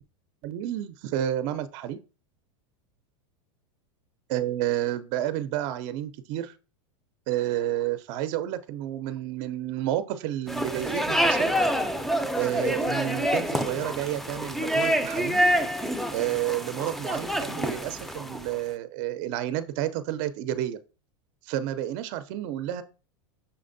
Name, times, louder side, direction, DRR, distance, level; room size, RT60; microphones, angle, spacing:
voice 1, 0.4-2.0 4.3-6.5 7.3-11.5 12.3-15.4 16.1-20.8 21.4-22.8, right 12 dB, 55° right, 13 dB, 0.5 m, -30 dB
sound 1, 10.5-18.6, equal, ahead, 0.5 m, -27 dB
5.7 x 3.3 x 2.6 m, 0.34 s
hypercardioid pair, 115°, 16 cm